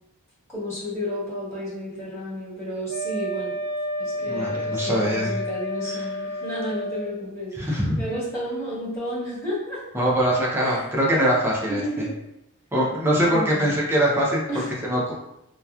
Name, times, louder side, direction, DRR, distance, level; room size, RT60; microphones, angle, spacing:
voice 1, 0.5-3.6 4.0-9.8 10.6-10.8 11.7-12.1 13.1-13.8 14.5-14.7, equal, 15° left, -11 dB, 1.3 m, -32 dB
Wind instrument woodwind instrument, 2.9-7.1, equal, 80° right, 0.7 m, -30 dB
voice 2, 4.2-5.4 5.9-6.0 7.6-8.0 9.9-11.8 12.7-15.1, equal, 10° right, -4 dB, 0.5 m, -23 dB
2.8 x 2.3 x 2.3 m, 0.85 s
head